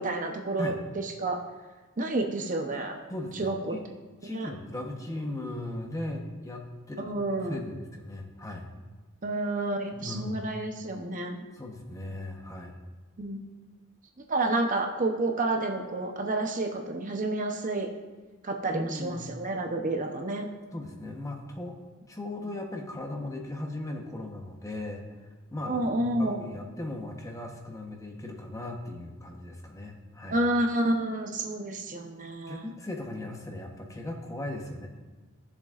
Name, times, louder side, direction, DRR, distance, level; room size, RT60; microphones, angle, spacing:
voice 1, 0.0-1.4 2.0-3.0 3.3-3.8 4.3-4.5 7.0-7.6 9.2-11.4 13.2-13.4 14.3-17.9 18.4-20.5 25.7-26.5 30.3-32.7, right 2 dB, 40° right, 3 dB, 0.8 m, -30 dB
voice 2, 3.1-3.8 4.2-8.7 9.9-10.5 11.5-12.8 18.7-19.3 20.7-21.8 22.1-25.2 25.5-30.4 32.5-34.9, left 1 dB, 15° left, 2 dB, 1.0 m, -37 dB
15.5 x 7.1 x 2.5 m, 1.3 s
head